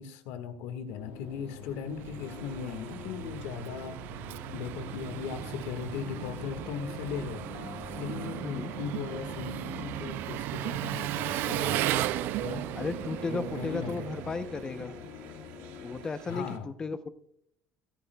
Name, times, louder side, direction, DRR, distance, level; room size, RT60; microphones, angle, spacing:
voice 1, 0.0-4.0 4.5-7.6 8.0-12.1 12.4-12.7 13.3-14.1 16.3-16.7, left 7 dB, 90° left, 10 dB, 1.6 m, -38 dB
sound 1, 0.9-16.1, left 11 dB, 65° left, 0.7 m, -46 dB
Engine, 1.5-15.0, right 15 dB, 60° right, 0.4 m, -36 dB
sound 2, 2.2-16.6, right 9 dB, 75° right, 1.7 m, -52 dB
voice 2, 12.8-15.0 15.8-17.1, left 4 dB, 20° left, 11 dB, 0.6 m, -35 dB
22.0 x 10.5 x 2.3 m, 0.72 s
cardioid pair, 160°, 4 cm